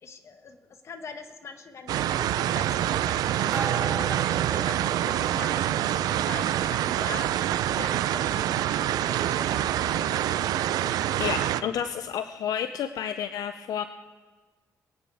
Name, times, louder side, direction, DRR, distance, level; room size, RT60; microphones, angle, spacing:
voice 1, 0.0-7.3 7.7-10.1, left 5 dB, 45° left, 7 dB, 1.2 m, -43 dB
sound 1, 1.9-11.6, right 12 dB, 80° right, 0.4 m, -26 dB
sound 2, 3.5-11.2, right 4 dB, 55° right, 2.7 m, -41 dB
voice 2, 11.2-13.9, left 9 dB, 70° left, 10 dB, 0.5 m, -30 dB
23.5 x 9.2 x 3.5 m, 1.4 s
cardioid pair, 100°, 6 cm